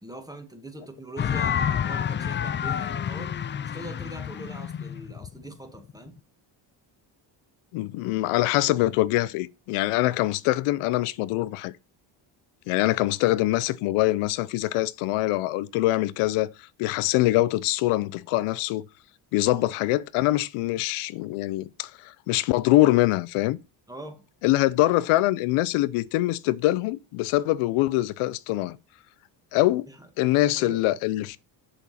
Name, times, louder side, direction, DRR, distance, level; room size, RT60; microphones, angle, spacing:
voice 1, 0.0-6.2 19.4-19.7 23.9-24.3 29.9-30.1 30.4-30.8, right 1 dB, 5° right, 1.9 m, -42 dB
sound 1, 1.2-6.1, left 8 dB, 25° left, 0.3 m, -29 dB
voice 2, 7.7-11.7 12.7-16.5 16.8-18.8 19.3-23.6 24.4-28.8 29.5-29.9 30.2-31.4, left 17 dB, 90° left, 0.6 m, -24 dB
7.2 x 7.1 x 4.2 m
cardioid pair, 95°, 49 cm